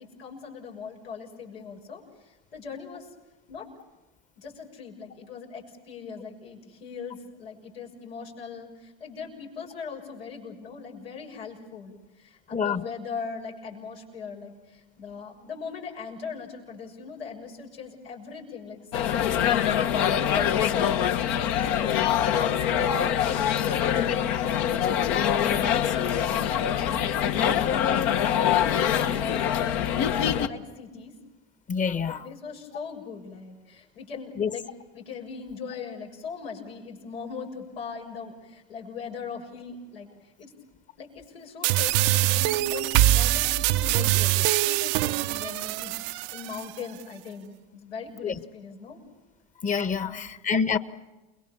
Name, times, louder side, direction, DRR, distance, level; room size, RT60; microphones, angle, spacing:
voice 1, 0.0-3.1 3.5-3.7 4.4-21.1 21.4-21.6 22.0-24.3 24.7-31.1 31.9-34.7 34.9-40.1 40.4-40.5 41.0-49.0 49.9-50.3, left 5 dB, 90° left, 7.0 m, -40 dB
voice 2, 12.5-12.8 21.8-22.1 31.7-32.3 34.4-34.5 48.2-48.4 49.6-50.8, left 6 dB, 25° left, 1.4 m, -27 dB
sound 1, 18.9-30.5, left 9 dB, 60° left, 1.6 m, -24 dB
sound 2, 41.6-46.6, right 16 dB, 55° right, 0.8 m, -23 dB
29.5 x 22.5 x 7.2 m
hypercardioid pair, 100°, 29 cm